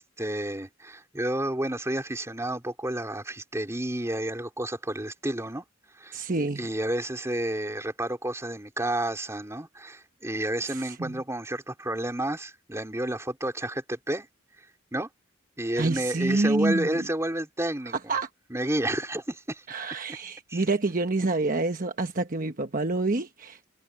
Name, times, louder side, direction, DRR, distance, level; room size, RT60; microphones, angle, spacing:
voice 1, 0.0-5.6 6.0-6.2 6.6-14.3 14.9-15.1 15.6-17.9 18.5-19.6 20.5-20.6, right 1 dB, 15° right, 3.8 m, -30 dB
voice 2, 6.1-6.7 10.7-11.2 15.8-17.1 18.1-18.3 19.7-23.7, right 2 dB, 45° right, 1.1 m, -27 dB
head